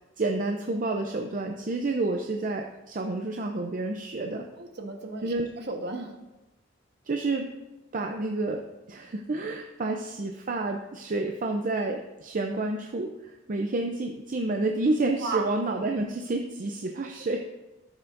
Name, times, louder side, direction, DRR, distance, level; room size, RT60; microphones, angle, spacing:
voice 1, 0.2-4.5 5.2-5.5 7.1-7.5 7.9-17.4, right 2 dB, 45° right, 3 dB, 0.6 m, -29 dB
voice 2, 4.6-6.1 15.2-15.5, right 3 dB, 60° right, 3 dB, 1.3 m, -34 dB
13.0 x 7.2 x 2.6 m, 1.0 s
head